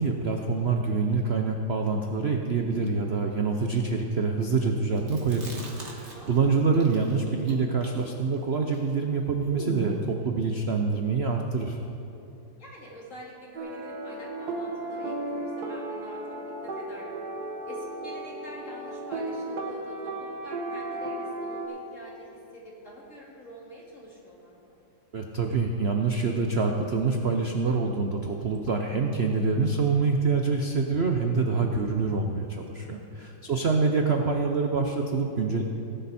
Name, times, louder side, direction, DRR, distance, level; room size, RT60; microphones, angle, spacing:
voice 1, 0.0-11.8 25.1-35.6, right 4 dB, 75° right, 3 dB, 0.5 m, -26 dB
Chewing mastication, 5.0-6.4 6.7-10.1, right 2 dB, 35° right, 1.8 m, -39 dB
voice 2, 12.6-16.2 16.6-17.1 17.7-24.7 33.5-33.6, equal, 35° left, -4 dB, 2.8 m, -46 dB
sound 1, 13.6-21.7, right 2 dB, 55° right, 1.7 m, -35 dB
18.0 x 11.0 x 4.3 m, 2.8 s
omnidirectional pair, 2.2 m